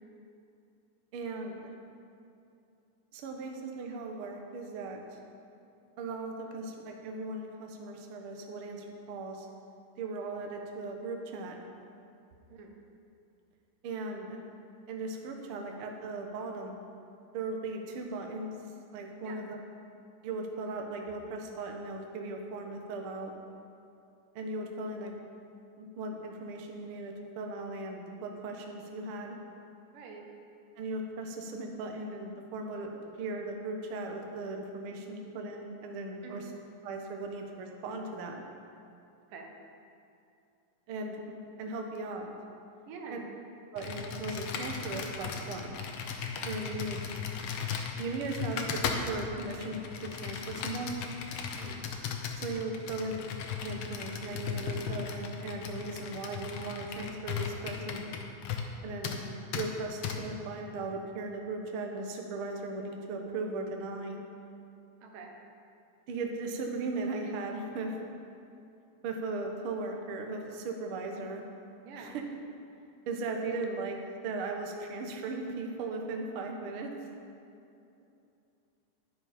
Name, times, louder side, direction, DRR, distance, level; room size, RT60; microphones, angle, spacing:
voice 1, 1.1-1.7 3.1-5.0 6.0-9.5 10.0-11.5 13.8-14.4 14.9-16.8 17.3-18.6 18.9-19.6 20.2-23.3 24.3-25.1 25.8-29.4 30.8-36.5 36.8-38.4 40.9-41.2 41.6-42.3 43.1-43.2 43.7-45.8 46.4-47.1 48.0-48.8 49.1-51.0 52.4-53.2 53.6-58.1 58.8-64.2 66.1-67.9 69.0-71.4 72.0-72.2 73.1-76.9, right 3 dB, 60° right, 2 dB, 1.5 m, -37 dB
voice 2, 29.9-30.3 36.2-36.5 39.3-39.5 42.9-43.3 51.5-51.8 65.0-65.3 71.8-72.2, right 4 dB, 90° right, 2 dB, 2.8 m, -46 dB
Computer keyboard, 43.8-58.8 59.0-59.2 59.5-59.7 60.0-60.2, left 6 dB, 75° left, 1.4 m, -37 dB
11.0 x 10.0 x 5.0 m, 2.7 s
omnidirectional pair, 3.7 m